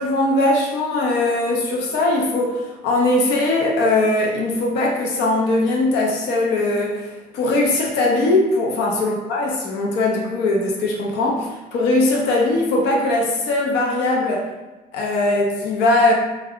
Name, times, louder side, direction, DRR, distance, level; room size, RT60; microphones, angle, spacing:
voice 1, 0.0-14.5 14.9-16.1, left 2 dB, 90° left, -1 dB, 0.6 m, -20 dB
3.3 x 2.3 x 3.6 m, 1.1 s
cardioid pair, 110°, 17 cm